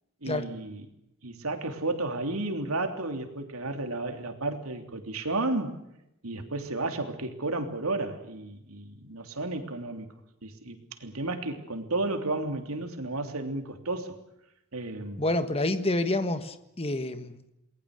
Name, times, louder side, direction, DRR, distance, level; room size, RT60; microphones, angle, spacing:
voice 1, 0.2-0.8 1.2-5.8 6.2-10.1 10.4-14.2 14.7-15.2, right 2 dB, 90° right, 6 dB, 3.2 m, -32 dB
voice 2, 15.2-17.5, left 2 dB, 30° left, 10 dB, 1.5 m, -28 dB
28.5 x 20.5 x 6.6 m, 0.84 s
head